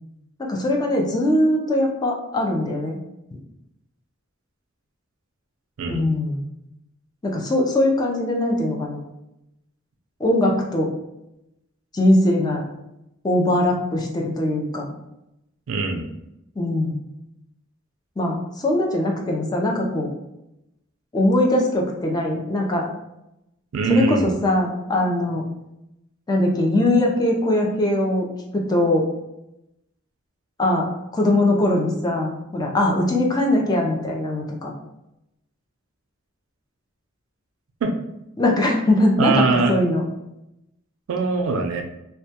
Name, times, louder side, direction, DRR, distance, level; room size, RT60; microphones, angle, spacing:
voice 1, 0.4-3.0 5.9-6.4 7.2-9.0 10.2-10.9 11.9-12.6 13.2-14.9 16.6-17.0 18.2-20.1 21.1-22.9 23.9-25.4 26.3-28.3 28.5-29.1 30.6-30.9 31.1-34.7 38.4-40.0, left 1 dB, 20° left, -1 dB, 0.4 m, -21 dB
voice 2, 15.7-16.1 23.7-24.3 37.8-37.9 39.2-39.7 41.1-41.8, right 3 dB, 70° right, 4 dB, 0.4 m, -21 dB
2.1 x 2.1 x 2.7 m, 0.86 s
head